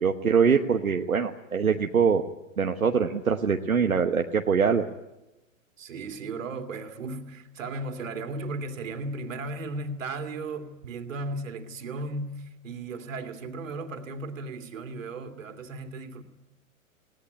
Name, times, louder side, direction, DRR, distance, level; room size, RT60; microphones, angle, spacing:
voice 1, 0.0-2.2 2.6-4.8, right 6 dB, 85° right, 1.3 m, -23 dB
voice 2, 5.8-16.2, right 2 dB, 65° right, 2.8 m, -35 dB
20.0 x 18.0 x 10.0 m
figure-of-eight pair, 110°, 41 cm